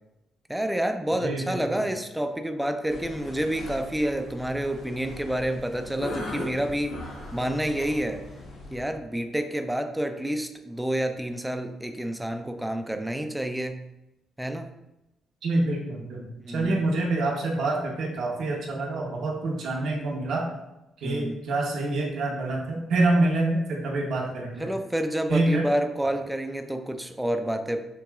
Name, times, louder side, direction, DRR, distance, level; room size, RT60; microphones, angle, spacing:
voice 1, 0.5-7.0 7.3-8.2 8.7-13.8 14.4-14.7 16.4-16.8 21.0-21.4 24.6-27.9, right 1 dB, 5° right, 7 dB, 0.4 m, -29 dB
voice 2, 1.1-1.8 15.4-20.4 21.0-24.7 25.3-25.7 26.0-26.1, right 2 dB, 70° right, -1 dB, 1.0 m, -26 dB
sound 1, 2.9-8.9, left 1 dB, 85° left, 1.4 m, -39 dB
6.7 x 2.9 x 2.4 m, 0.92 s
cardioid pair, 90°, 0 cm